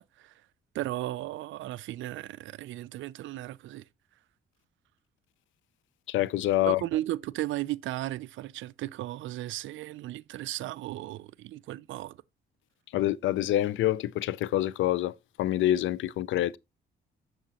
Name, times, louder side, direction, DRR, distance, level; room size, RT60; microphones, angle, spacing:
voice 1, 0.7-3.8 6.7-12.2, right 15 dB, 75° right, 0.4 m, -35 dB
voice 2, 6.1-6.8 12.9-16.6, left 14 dB, 75° left, 0.5 m, -26 dB
7.8 x 6.9 x 2.9 m
cardioid pair, 90°, 20 cm